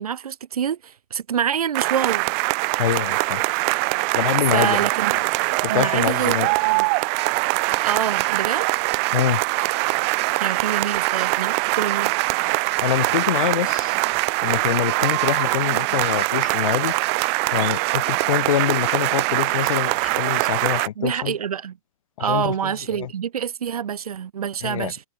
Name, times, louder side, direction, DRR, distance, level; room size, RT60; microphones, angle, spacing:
voice 1, 0.0-2.3 4.5-5.1 5.7-6.4 6.6-6.9 7.8-8.7 10.4-12.1 21.0-21.8 22.2-25.0, right 8 dB, 80° right, 2.8 m, -26 dB
sound 1, 1.7-20.9, right 39 dB, 25° right, 0.3 m, -23 dB
voice 2, 2.8-3.4 3.9-4.8 5.6-6.5 9.1-9.4 12.8-13.9 14.4-16.9 17.5-21.3 22.2-23.1 24.6-24.9, left 11 dB, 65° left, 6.2 m, -25 dB
sound 2, 7.2-19.9, right 17 dB, 45° right, 5.3 m, -38 dB
hypercardioid pair, 150°, 19 cm